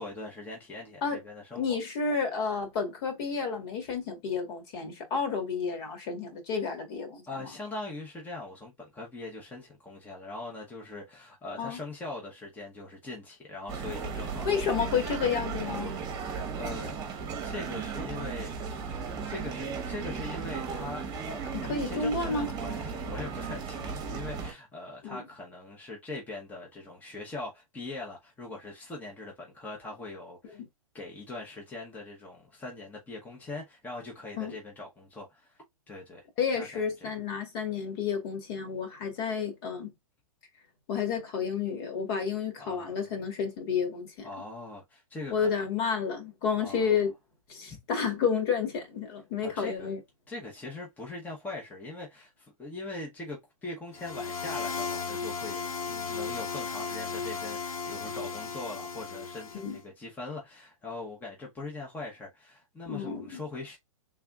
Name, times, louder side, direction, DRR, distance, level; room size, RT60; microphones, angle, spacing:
voice 1, 0.0-1.8 7.3-15.1 16.2-16.9 17.4-19.0 19.2-30.6 30.9-36.3 36.5-37.1 42.6-43.1 44.2-45.5 46.6-47.0 47.7-47.8 49.4-50.0 50.3-63.8, left 2 dB, 10° left, 0.9 m, -41 dB
voice 2, 1.5-7.5 11.6-11.8 14.4-16.0 21.5-22.5 25.0-25.2 30.5-30.7 34.4-34.5 36.4-39.9 40.9-44.3 45.3-47.1 47.5-50.0 59.6-59.8 62.9-63.4, left 6 dB, 45° left, 1.6 m, -31 dB
sound 1, 13.7-24.5, right 5 dB, 20° right, 1.2 m, -36 dB
sound 2, 53.9-59.8, left 5 dB, 85° left, 1.0 m, -35 dB
3.5 x 3.3 x 2.4 m
hypercardioid pair, 140°, 18 cm